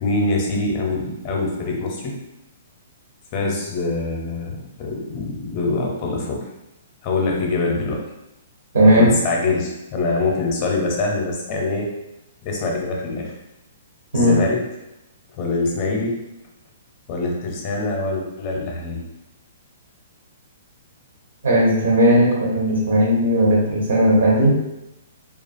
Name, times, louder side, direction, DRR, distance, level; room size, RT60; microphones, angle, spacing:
voice 1, 0.0-2.1 3.3-6.4 7.0-8.0 8.9-11.9 12.4-13.3 14.1-14.6 15.4-16.1 17.1-19.0, left 3 dB, 35° left, 0 dB, 0.6 m, -24 dB
voice 2, 8.7-9.2 14.1-14.4 21.4-24.6, equal, 75° right, -4 dB, 0.7 m, -16 dB
2.4 x 2.3 x 2.4 m, 0.92 s
figure-of-eight pair, 120°, 0 cm